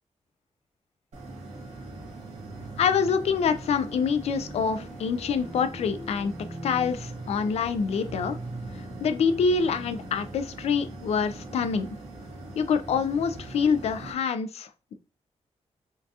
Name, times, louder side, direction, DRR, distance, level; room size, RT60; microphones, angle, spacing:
sound 1, 1.1-14.1, right 2 dB, 85° right, 1.5 m, -42 dB
sound 2, 2.0-11.9, right 1 dB, 10° left, 0.9 m, -43 dB
voice 1, 2.8-6.3 6.6-8.4 9.0-11.9 12.6-15.0, left 6 dB, 65° left, 10 dB, 0.4 m, -26 dB
4.5 x 2.4 x 2.7 m, 0.33 s
wide cardioid pair, 170°, 12 cm